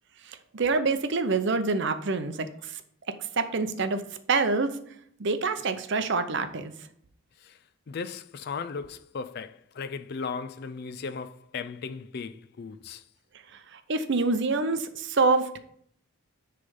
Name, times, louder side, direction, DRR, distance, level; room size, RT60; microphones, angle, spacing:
voice 1, 0.3-2.8 3.4-4.0 4.3-4.7 5.2-6.7 13.7-15.6, right 3 dB, 55° right, 0.6 m, -26 dB
voice 2, 7.9-13.0, left 5 dB, 45° left, 0.3 m, -36 dB
9.8 x 3.4 x 5.3 m
head